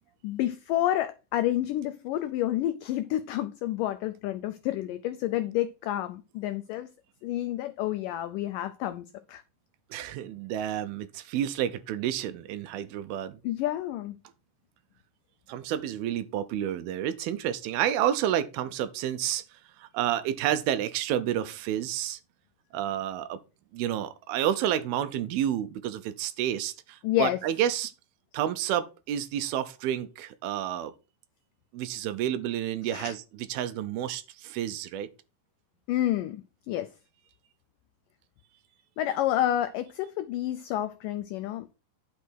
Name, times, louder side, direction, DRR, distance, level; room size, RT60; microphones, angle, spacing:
voice 1, 0.2-6.9 7.2-9.4 13.4-14.2 27.0-27.4 32.9-33.1 35.9-37.0 39.0-41.7, left 13 dB, 90° left, 1.9 m, -29 dB
voice 2, 9.9-13.4 15.5-19.4 19.8-22.2 22.7-23.4 23.7-27.9 28.3-30.9 31.7-33.2 33.5-35.1, right 11 dB, 80° right, 2.5 m, -30 dB
10.5 x 6.3 x 4.6 m
omnidirectional pair, 4.5 m